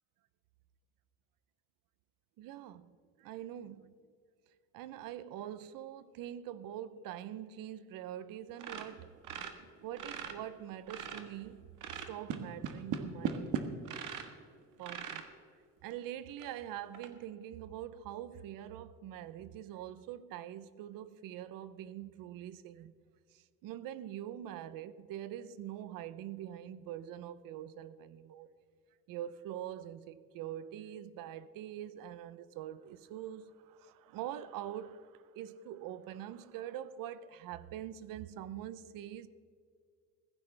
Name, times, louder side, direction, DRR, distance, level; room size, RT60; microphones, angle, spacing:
voice 1, 2.4-2.9 3.2-3.9 4.7-9.1 9.8-13.6 14.8-15.2 15.8-22.9 23.3-28.5 29.1-39.3, right 11 dB, 90° right, 0.8 m, -44 dB
sound 1, 8.6-10.4 10.7-11.4 11.8-14.3 14.8-15.3 15.9-16.0 16.4-16.5 16.9-17.1, right 7 dB, 70° right, 1.5 m, -38 dB
16.5 x 15.0 x 3.4 m
cardioid pair, 140°, 33 cm